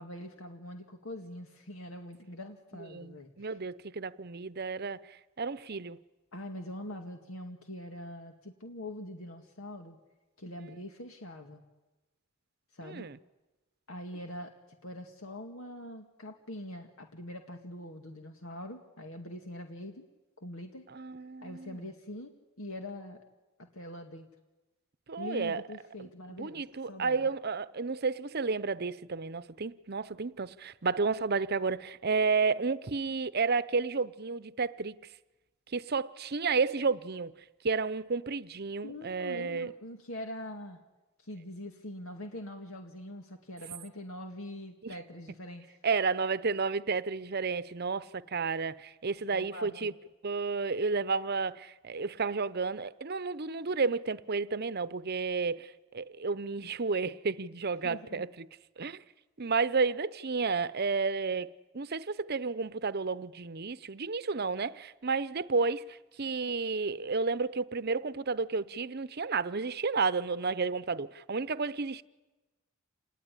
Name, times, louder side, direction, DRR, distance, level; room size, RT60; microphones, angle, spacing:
voice 1, 0.0-3.6 6.3-10.0 10.4-11.6 12.7-13.1 13.9-14.5 14.8-20.0 20.4-20.9 21.4-22.3 22.6-23.2 23.6-24.3 25.2-27.2 38.8-40.8 41.2-45.7 49.3-49.9 57.8-58.2, left 1 dB, 80° left, 2.2 m, -43 dB
voice 2, 2.9-6.0 12.8-13.2 20.9-21.9 25.1-25.6 26.3-35.0 35.7-37.3 37.6-39.7 44.8-44.9 45.8-49.9 50.2-58.5 58.8-59.0 59.4-72.0, right 4 dB, 50° right, 0.8 m, -32 dB
28.0 x 19.0 x 10.0 m
head